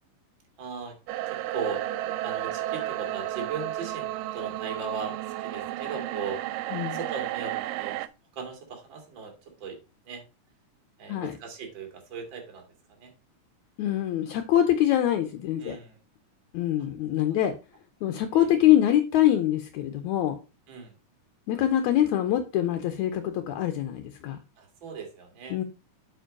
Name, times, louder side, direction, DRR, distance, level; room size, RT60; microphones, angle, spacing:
voice 1, 0.6-1.0 1.3-6.4 6.9-8.0 8.3-9.8 10.0-10.2 11.0-13.1 15.6-16.0 17.2-17.4 18.3-18.5 20.7-21.0 24.6-25.6, right 5 dB, 40° right, 3 dB, 2.4 m, -38 dB
sound 1, 1.1-8.1, right 14 dB, 85° right, 2.3 m, -33 dB
voice 2, 13.8-15.8 16.5-17.5 18.0-20.4 21.5-24.4 25.5-25.6, left 12 dB, 75° left, 7 dB, 1.9 m, -24 dB
7.7 x 4.6 x 4.9 m, 0.30 s
omnidirectional pair, 3.9 m